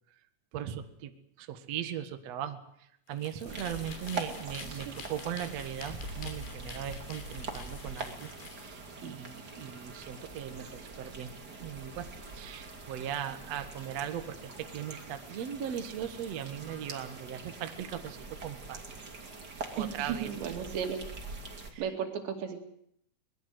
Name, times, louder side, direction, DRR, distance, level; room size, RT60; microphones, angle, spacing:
voice 1, 0.5-1.1 1.4-2.6 3.1-11.3 11.6-12.1 12.3-18.2 18.4-18.8 19.8-20.3 21.7-21.8, right 9 dB, 55° right, 8 dB, 1.9 m, -38 dB
sound 1, 3.1-8.7, left 5 dB, 75° left, 5.1 m, -48 dB
sound 2, 3.4-21.7, right 3 dB, 30° right, 2.5 m, -44 dB
voice 2, 19.8-21.0 21.8-22.6, right 8 dB, 80° right, 5 dB, 4.8 m, -35 dB
23.0 x 20.5 x 7.9 m, 0.71 s
omnidirectional pair, 5.0 m